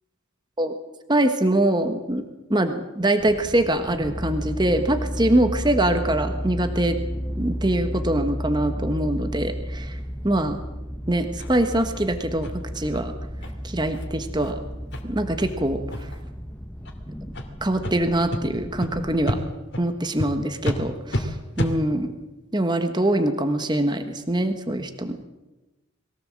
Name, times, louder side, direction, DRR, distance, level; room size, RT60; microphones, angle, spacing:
voice 1, 1.1-2.2 2.5-7.0 7.4-10.0 10.2-10.6 11.1-12.5 12.7-13.1 13.6-14.6 15.0-15.8 17.6-19.4 19.8-22.1 22.5-25.2, right 1 dB, 20° right, 7 dB, 1.3 m, -23 dB
sound 1, 3.2-19.4, equal, 10° left, 1.1 m, -33 dB
sound 2, 11.4-11.5 11.9-12.0 12.4-12.5 12.9-13.0 13.4-13.5 13.9-14.0 14.4-14.5 14.9-15.0 15.4-15.5 15.9-16.2 16.8-16.9 17.3-17.5 17.8-17.9 18.3-18.4 18.8-18.9 19.2-19.4 19.7-19.8 20.2-20.3 20.6-20.8 21.1-21.2 21.5-21.7, equal, 55° left, 2.6 m, -29 dB
22.0 x 17.0 x 7.6 m, 1.0 s
head